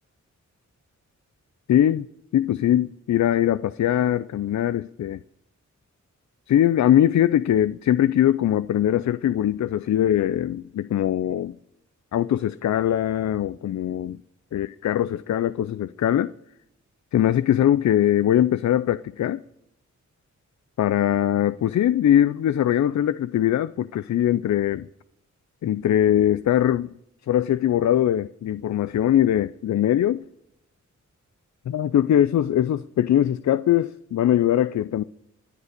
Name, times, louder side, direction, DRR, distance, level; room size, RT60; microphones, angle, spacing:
voice 1, 1.7-2.1 2.3-5.2 6.5-11.5 12.1-14.2 14.5-16.3 17.1-19.4 20.8-24.9 25.6-26.9 27.3-30.2 31.7-35.0, left 11 dB, 65° left, 0.5 m, -21 dB
23.5 x 8.3 x 6.6 m
cardioid pair, 80°, 30 cm